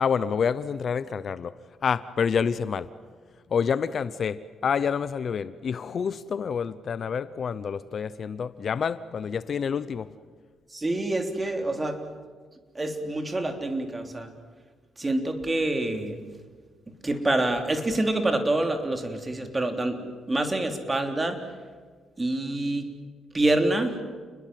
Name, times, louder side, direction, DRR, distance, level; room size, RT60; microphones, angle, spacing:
voice 1, 0.0-1.5 1.8-2.9 3.5-10.1, left 6 dB, 50° left, 15 dB, 0.8 m, -28 dB
voice 2, 10.7-12.0 12.7-14.3 15.0-16.2 17.0-20.0 20.3-21.4 22.2-22.9 23.3-24.0, right 2 dB, 20° right, 5 dB, 3.4 m, -26 dB
29.5 x 21.0 x 7.7 m, 1.5 s
cardioid pair, 90°, 0 cm